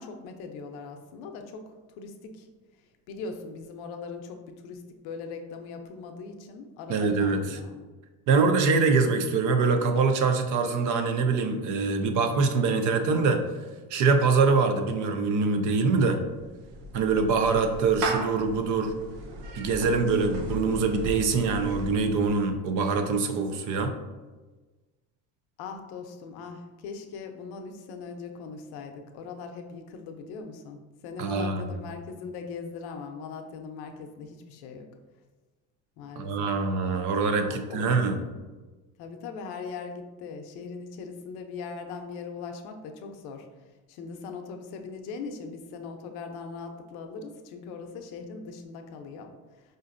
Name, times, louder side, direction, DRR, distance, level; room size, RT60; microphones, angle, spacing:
voice 1, 0.0-1.7 2.0-2.5 3.1-7.8 25.6-34.9 36.0-36.5 37.4-38.0 39.0-43.5 43.9-49.3, left 5 dB, 70° left, 5 dB, 0.6 m, -40 dB
voice 2, 6.9-7.6 8.3-13.4 13.9-16.2 16.9-18.9 19.6-23.9 31.2-31.7 36.2-38.1, right 4 dB, 50° right, 6 dB, 0.5 m, -24 dB
Clapping / Meow, 16.2-22.6, right 2 dB, 80° right, 0.8 m, -37 dB
5.0 x 2.6 x 2.5 m, 1.2 s
cardioid pair, 140°, 39 cm